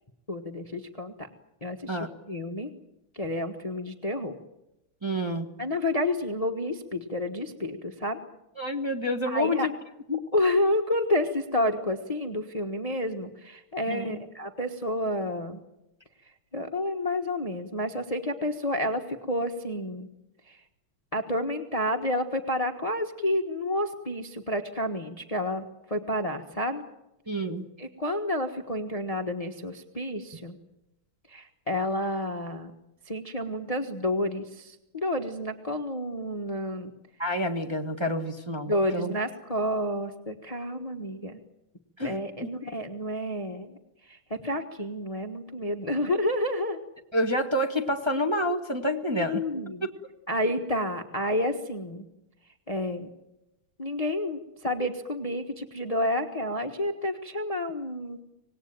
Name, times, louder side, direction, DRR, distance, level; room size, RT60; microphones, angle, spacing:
voice 1, 0.3-1.3 1.6-2.0 2.3-2.7 3.1-4.4 5.6-8.2 9.3-9.7 10.3-15.6 16.5-20.1 20.5-20.6 21.1-26.8 27.8-30.6 31.3-32.7 33.1-36.9 38.7-41.4 42.0-43.8 44.1-46.8 49.1-49.9 50.3-52.0 52.7-53.1 53.8-58.2, left 1 dB, 20° left, 6 dB, 1.2 m, -30 dB
voice 2, 5.0-5.5 8.6-9.7 10.1-10.2 13.9-14.2 27.3-27.7 37.2-39.1 42.0-42.5 47.1-49.4 49.8-49.9, equal, 15° right, 3 dB, 1.4 m, -28 dB
25.5 x 19.5 x 9.0 m, 0.92 s
omnidirectional pair, 2.3 m